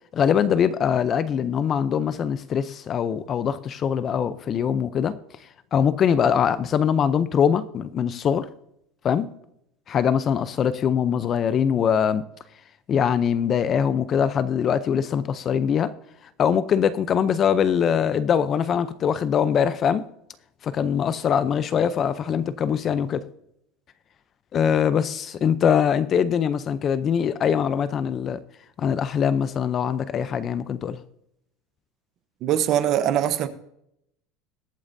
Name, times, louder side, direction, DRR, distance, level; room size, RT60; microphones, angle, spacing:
voice 1, 0.1-5.1 5.7-8.5 9.0-9.3 9.9-12.2 12.9-15.9 16.4-20.0 20.6-23.2 24.5-28.4 28.8-31.0, left 8 dB, 30° left, 0.5 m, -22 dB
voice 2, 32.4-33.5, right 10 dB, 40° right, 0.9 m, -22 dB
21.0 x 8.6 x 2.7 m
cardioid pair, 165°, 0 cm